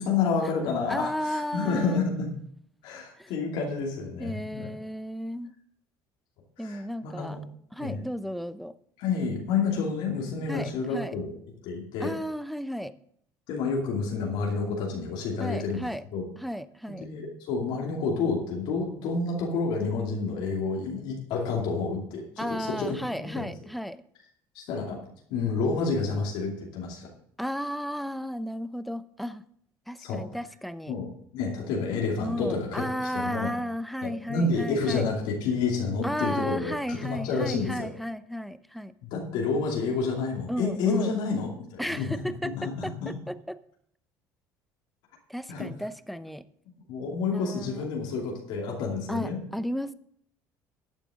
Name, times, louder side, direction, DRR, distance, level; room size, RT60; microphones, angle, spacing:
voice 1, 0.0-2.3 2.8-4.7 6.6-7.4 7.8-8.0 9.0-11.3 11.6-12.1 13.5-16.3 16.9-23.4 24.5-25.0 25.3-27.1 30.0-30.2 30.9-31.1 31.3-32.8 33.1-33.5 34.0-37.9 39.0-43.1 45.5-45.7 46.9-49.4, left 4 dB, 75° left, -1 dB, 2.7 m, -29 dB
voice 2, 0.9-2.1 3.2-3.3 4.2-5.5 6.6-7.4 7.7-8.7 10.5-11.2 12.0-12.9 15.4-16.0 16.4-17.1 22.4-24.0 27.4-29.4 29.9-31.0 32.2-35.0 36.0-38.9 40.5-41.1 41.8-43.6 45.3-46.4 47.3-47.9 49.1-49.9, equal, ahead, 14 dB, 0.6 m, -34 dB
13.5 x 9.1 x 3.7 m, 0.66 s
supercardioid pair, 90°, 8 cm